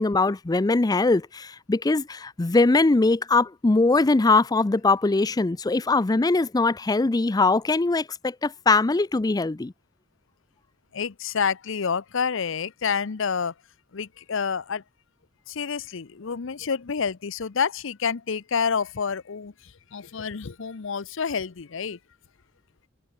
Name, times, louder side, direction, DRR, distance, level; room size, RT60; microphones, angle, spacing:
voice 1, 0.0-9.7, left 3 dB, 20° left, 0.4 m, -21 dB
voice 2, 10.9-13.5 13.9-14.8 15.5-19.5 19.9-22.0, left 6 dB, 65° left, 0.7 m, -28 dB
head